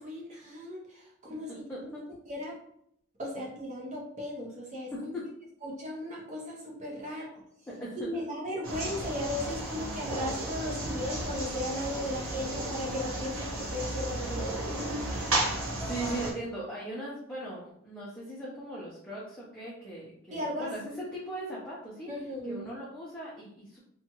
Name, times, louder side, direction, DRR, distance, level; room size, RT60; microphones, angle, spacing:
voice 1, 0.0-1.9 2.3-2.6 3.2-5.1 5.6-7.4 8.0-14.9 20.3-20.7 22.1-22.7, left 1 dB, 35° right, -2 dB, 0.6 m, -36 dB
voice 2, 1.5-1.8 4.9-5.2 7.0-7.3 7.8-8.0 15.8-23.8, right 1 dB, 5° left, -8 dB, 0.6 m, -39 dB
sound 1, 8.6-16.3, right 1 dB, 85° right, 1.0 m, -33 dB
2.8 x 2.3 x 2.9 m, 0.71 s
head